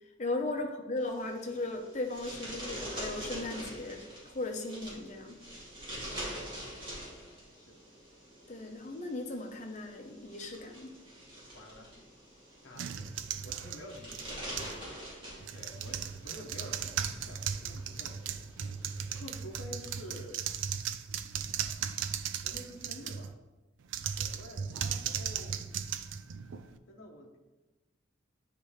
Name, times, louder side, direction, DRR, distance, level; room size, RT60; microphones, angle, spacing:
voice 1, 0.2-5.4 8.5-10.9, left 2 dB, 35° left, 3 dB, 0.7 m, -37 dB
sound 1, 1.0-19.2, right 1 dB, 25° right, 1.8 m, -45 dB
voice 2, 6.0-7.8 11.5-11.9 12.6-13.1 13.4-14.5 15.5-18.2 19.1-20.4 22.4-23.4 24.2-25.6 26.9-27.4, left 1 dB, 80° left, 0 dB, 0.8 m, -49 dB
sound 2, 12.8-14.8 15.4-23.3 23.8-26.8, right 8 dB, 70° right, 0.4 m, -37 dB
9.7 x 3.3 x 3.1 m, 1.1 s
head